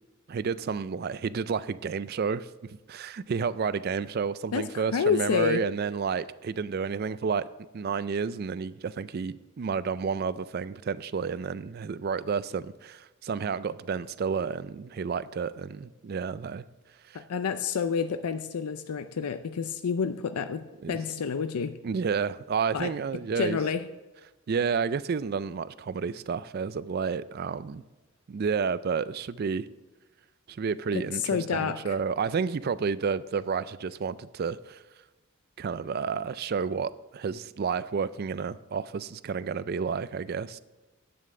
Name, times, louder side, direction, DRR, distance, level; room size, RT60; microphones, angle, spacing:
voice 1, 0.3-2.5 2.9-7.5 7.7-16.6 17.1-17.2 20.8-21.0 21.8-23.6 24.5-27.8 28.3-29.7 30.5-34.8 35.6-40.6, right 5 dB, 45° right, 16 dB, 0.3 m, -30 dB
voice 2, 4.5-5.6 17.1-21.8 22.7-22.9 23.4-23.9 30.9-32.0, left 6 dB, 85° left, 10 dB, 0.5 m, -29 dB
10.5 x 8.8 x 3.7 m, 1.2 s
head